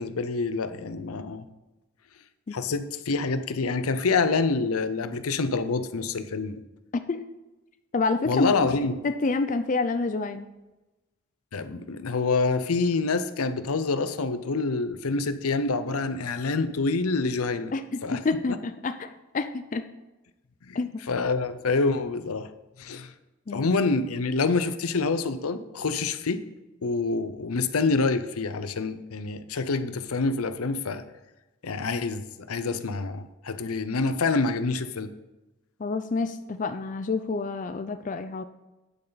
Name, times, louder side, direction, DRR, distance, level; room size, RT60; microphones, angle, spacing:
voice 1, 0.0-1.5 2.5-6.6 8.3-8.9 11.5-17.7 18.0-18.2 20.6-20.8 21.1-22.5 22.8-23.1 23.5-26.4 26.8-31.0 31.6-35.1, left 3 dB, 90° left, 0.7 m, -27 dB
voice 2, 7.9-8.5 9.0-10.5 17.7-19.8 20.7-20.9 23.5-23.7 35.8-38.4, left 3 dB, 35° left, 0.4 m, -28 dB
9.2 x 8.6 x 4.0 m
head